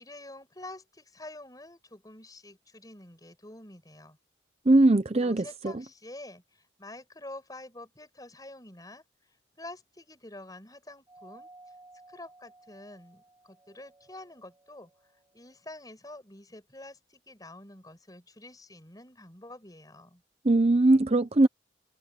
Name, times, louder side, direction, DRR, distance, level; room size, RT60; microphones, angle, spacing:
voice 1, 0.0-4.2 5.2-11.5 12.1-20.2, left 2 dB, 20° left, 6.4 m, -47 dB
voice 2, 4.7-5.7 20.4-21.5, right 2 dB, 35° right, 0.7 m, -21 dB
Doorbell, 11.1-15.9, right 2 dB, 20° right, 6.3 m, -56 dB
head